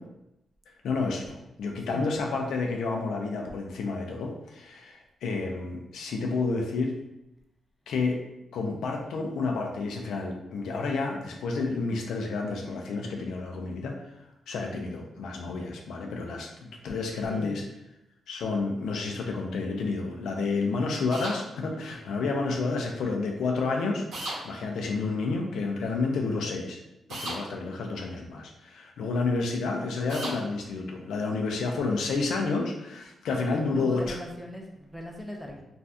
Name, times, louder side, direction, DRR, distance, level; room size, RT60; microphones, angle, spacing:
voice 1, 0.8-6.9 7.9-8.2 8.5-14.0 14.5-17.6 18.3-24.1 24.4-26.8 27.1-34.2, left 3 dB, 90° left, 1 dB, 0.5 m, -30 dB
voice 2, 8.6-9.2 17.3-17.6 33.7-35.6, equal, ahead, 0 dB, 0.5 m, -40 dB
sound 1, 21.1-21.4 24.1-24.4 27.1-27.4 30.1-30.4, right 1 dB, 90° right, 0.9 m, -34 dB
2.6 x 2.3 x 3.4 m, 0.89 s
cardioid pair, 115°, 0 cm